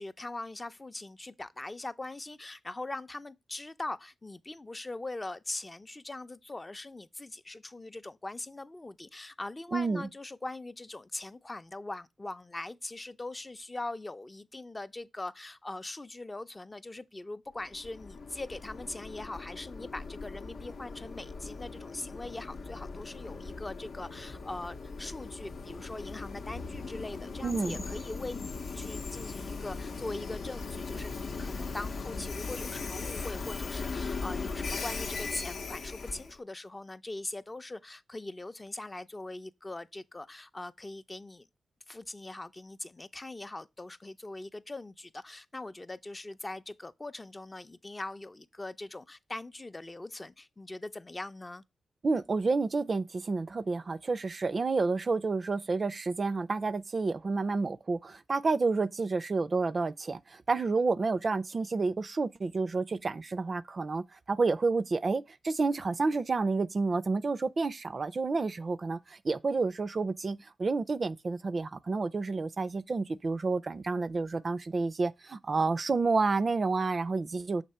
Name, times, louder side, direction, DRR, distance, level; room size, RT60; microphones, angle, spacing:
voice 1, 0.0-31.1 31.4-41.5 41.9-51.6, left 2 dB, 25° left, 0.5 m, -41 dB
voice 2, 9.7-10.1 27.4-27.8 52.0-77.6, right 3 dB, 50° right, 0.4 m, -30 dB
Train, 17.6-36.4, left 4 dB, 75° left, 0.6 m, -39 dB
6.6 x 2.8 x 5.4 m
cardioid pair, 55°, 0 cm